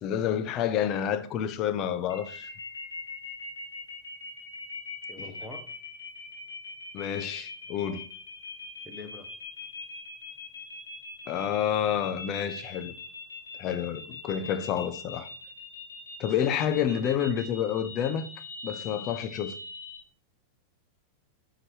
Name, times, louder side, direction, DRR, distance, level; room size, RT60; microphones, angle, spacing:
voice 1, 0.0-2.5 6.9-8.1 11.3-12.9 13.6-15.3 16.2-18.3 18.6-19.5, left 9 dB, 35° left, 0.8 m, -29 dB
sound 1, 2.1-20.0, left 3 dB, 70° left, 2.3 m, -41 dB
voice 2, 5.1-5.7 8.8-9.3 16.7-17.3, left 3 dB, 5° left, 1.4 m, -44 dB
9.7 x 5.2 x 2.9 m
figure-of-eight pair, 90°, 0 cm